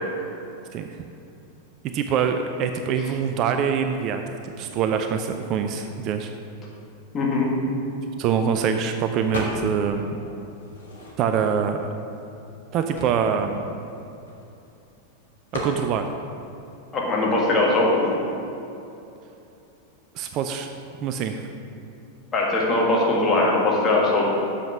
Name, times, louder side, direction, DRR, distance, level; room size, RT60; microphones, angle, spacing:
voice 1, 0.7-1.0 1.9-6.3 8.2-10.2 11.2-11.9 12.7-13.7 15.5-16.0 20.1-20.7 21.0-21.4, right 7 dB, 35° right, 6 dB, 0.4 m, -24 dB
voice 2, 7.1-7.5 16.9-18.1 22.3-24.3, left 2 dB, 25° left, -4 dB, 2.0 m, -20 dB
sound 1, 9.3-9.9 10.3-11.5 12.1-12.2 12.4-14.7 15.5-15.8, left 2 dB, 65° left, 1.5 m, -34 dB
7.0 x 5.7 x 6.1 m, 2.8 s
figure-of-eight pair, 90°, 0 cm